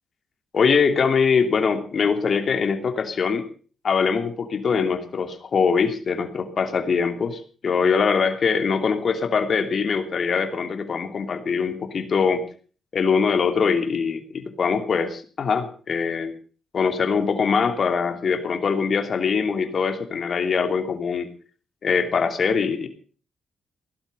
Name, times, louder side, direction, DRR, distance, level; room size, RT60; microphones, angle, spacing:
voice 1, 0.5-3.5 3.8-12.4 12.9-16.3 16.7-21.3 21.8-22.9, left 5 dB, 50° left, 7 dB, 2.9 m, -22 dB
17.5 x 12.0 x 5.5 m, 0.41 s
cardioid pair, 85°, 0 cm